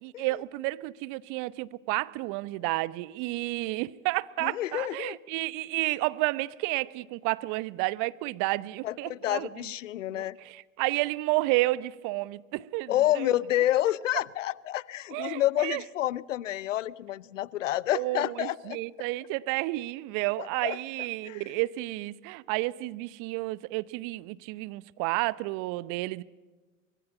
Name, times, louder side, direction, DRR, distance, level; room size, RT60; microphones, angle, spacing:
voice 1, 0.0-9.5 10.1-13.4 15.1-15.8 17.9-26.2, right 20 dB, 55° right, 0.9 m, -31 dB
voice 2, 4.4-5.2 8.8-10.4 12.9-18.8 20.4-20.8 21.2-21.5, left 14 dB, 75° left, 0.8 m, -29 dB
24.5 x 23.0 x 7.1 m
figure-of-eight pair, 65°, 38 cm